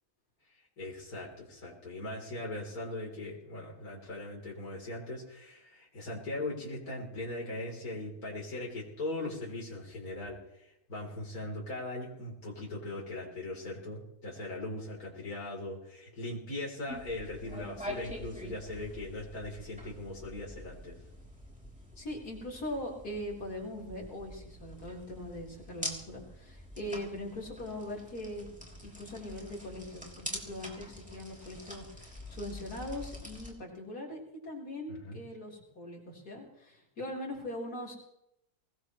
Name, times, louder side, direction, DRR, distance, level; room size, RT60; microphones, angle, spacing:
voice 1, 0.8-21.0 34.9-35.2, left 2 dB, 70° left, -3 dB, 4.3 m, -40 dB
sound 1, 16.9-33.5, left 1 dB, 5° right, 3.2 m, -45 dB
voice 2, 22.0-28.5 28.8-38.0, left 1 dB, 85° left, -3 dB, 4.8 m, -41 dB
23.0 x 19.0 x 3.2 m, 0.82 s
omnidirectional pair, 1.6 m